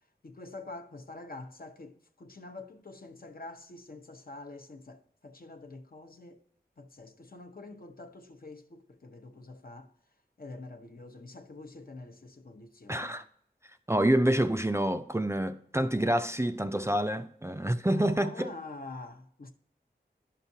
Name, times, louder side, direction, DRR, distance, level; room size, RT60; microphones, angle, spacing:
voice 1, 0.2-6.4 6.8-9.9 10.4-13.2 17.9-19.5, left 2 dB, 55° left, 0.8 m, -46 dB
voice 2, 12.9-13.2 13.9-18.5, right 1 dB, 15° right, 0.4 m, -27 dB
11.0 x 5.8 x 2.7 m
wide cardioid pair, 50°, 18 cm